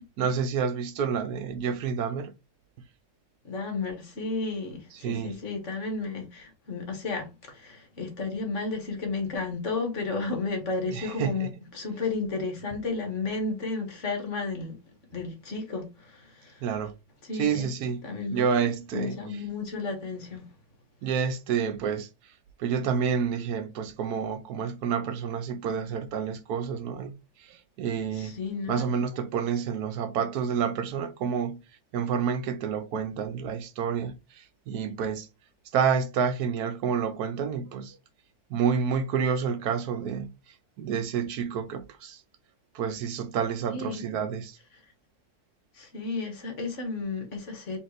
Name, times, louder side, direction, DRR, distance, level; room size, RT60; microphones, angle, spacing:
voice 1, 0.2-2.3 5.0-5.3 10.9-11.5 16.6-16.9 17.4-18.0 18.3-19.2 21.0-22.1 22.6-27.1 27.8-28.3 28.7-31.6 31.9-34.2 34.7-35.3 35.7-38.0 38.5-40.3 40.8-42.2 42.7-44.5, right 7 dB, 85° right, 1.3 m, -29 dB
voice 2, 3.5-14.8 15.1-16.6 17.2-17.7 18.0-18.5 18.9-20.4 28.1-28.9 43.7-44.1 45.8-47.8, left 3 dB, 55° left, 1.6 m, -33 dB
4.4 x 3.2 x 3.1 m
omnidirectional pair, 1.6 m